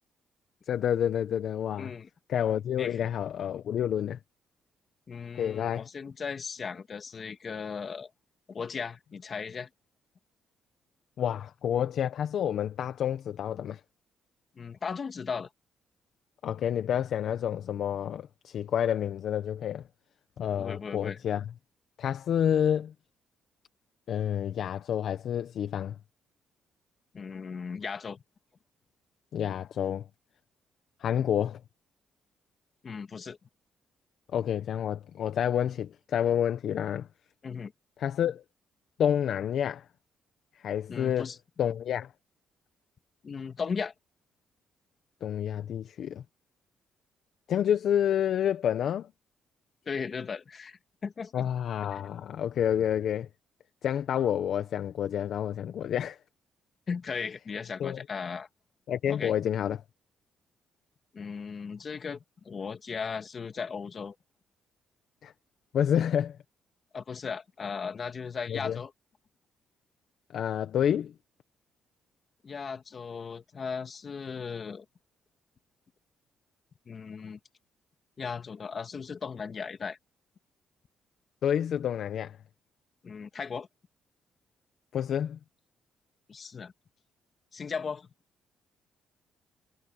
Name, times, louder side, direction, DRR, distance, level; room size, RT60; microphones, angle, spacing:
voice 1, 0.7-1.9 2.3-4.2 5.3-5.8 11.2-13.8 16.4-19.8 20.4-21.5 22.0-22.9 24.1-26.0 29.3-30.1 31.0-31.6 34.3-37.1 38.0-38.4 39.0-39.8 40.5-41.3 41.6-42.1 45.2-46.2 47.5-49.1 51.3-53.3 53.8-56.2 57.8-58.0 58.9-59.8 65.2-65.3 65.7-66.4 68.5-68.8 70.3-71.1 81.4-82.4 84.9-85.4, left 9 dB, 65° left, 1.2 m, -29 dB
voice 2, 1.8-2.1 2.8-3.1 5.1-8.1 8.5-9.7 14.6-15.5 20.6-21.2 27.1-28.2 32.8-33.4 37.4-37.7 40.9-41.4 43.2-43.9 49.9-51.3 51.9-52.0 56.9-58.5 59.1-59.3 61.1-64.2 66.9-68.9 72.4-74.8 76.9-77.4 78.2-80.0 83.0-83.7 86.3-86.7 87.5-88.1, left 5 dB, 45° left, 2.5 m, -37 dB
cardioid pair, 90°, 0 cm